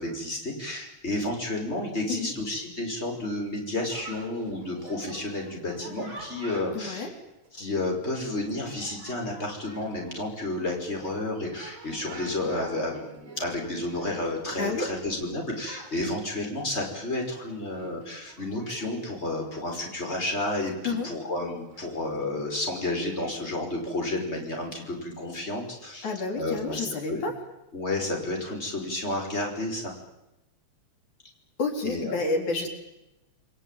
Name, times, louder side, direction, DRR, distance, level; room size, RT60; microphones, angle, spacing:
voice 1, 0.0-7.1 7.5-26.1 26.4-27.2 27.7-29.9 31.8-32.1, left 2 dB, 20° left, 1 dB, 5.9 m, -31 dB
Chatter, 3.9-23.5, right 3 dB, 40° right, 4.6 m, -49 dB
voice 2, 6.7-7.1 14.6-14.9 20.8-21.1 26.0-27.3 31.6-32.7, left 3 dB, 80° left, 3 dB, 5.2 m, -29 dB
29.5 x 22.0 x 9.2 m, 0.97 s
omnidirectional pair, 3.3 m